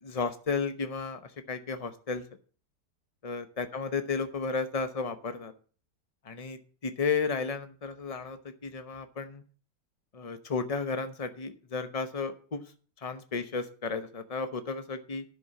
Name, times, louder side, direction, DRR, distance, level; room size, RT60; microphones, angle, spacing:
voice 1, 0.0-2.2 3.2-5.5 6.2-9.4 10.1-12.6 13.0-15.2, left 4 dB, 30° left, 9 dB, 0.7 m, -33 dB
11.0 x 6.2 x 7.3 m, 0.41 s
omnidirectional pair, 1.9 m